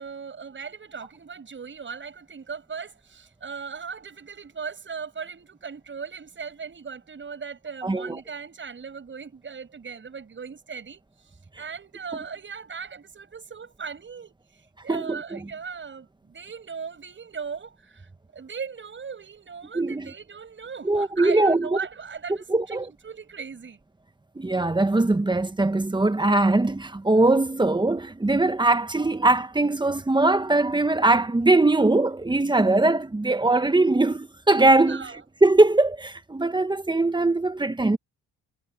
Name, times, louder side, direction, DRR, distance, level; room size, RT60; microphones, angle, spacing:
voice 1, 0.0-23.8 34.8-35.2, right 5 dB, 40° right, 7.9 m, -38 dB
voice 2, 7.8-8.2 14.9-15.4 19.7-20.1 20.8-21.8 22.5-22.9 24.3-38.0, right 2 dB, 15° right, 1.5 m, -21 dB
cardioid pair, 90°, 30 cm